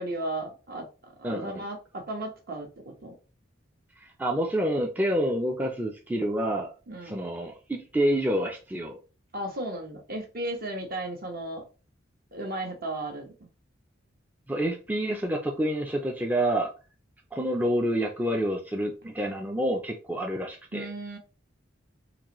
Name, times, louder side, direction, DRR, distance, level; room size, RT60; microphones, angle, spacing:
voice 1, 0.0-3.2 6.9-7.2 9.3-11.6 12.3-13.5 20.7-21.2, right 1 dB, 50° right, 3 dB, 1.0 m, -35 dB
voice 2, 1.2-1.6 4.0-6.7 7.0-9.0 14.5-16.7 17.3-20.9, right 1 dB, 10° right, 1 dB, 0.4 m, -28 dB
3.9 x 2.6 x 2.9 m, 0.33 s
head